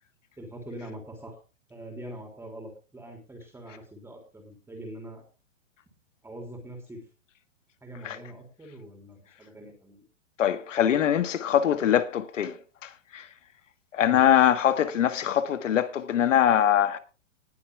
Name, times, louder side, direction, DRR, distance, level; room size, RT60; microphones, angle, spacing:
voice 1, 0.4-1.4 1.7-5.2 6.2-7.0 7.8-10.0 14.0-14.2, right 1 dB, 5° right, 3.3 m, -43 dB
voice 2, 10.4-12.6 12.8-13.3 13.9-17.0, left 10 dB, 70° left, 1.7 m, -23 dB
19.5 x 8.0 x 3.5 m
hypercardioid pair, 130°, 38 cm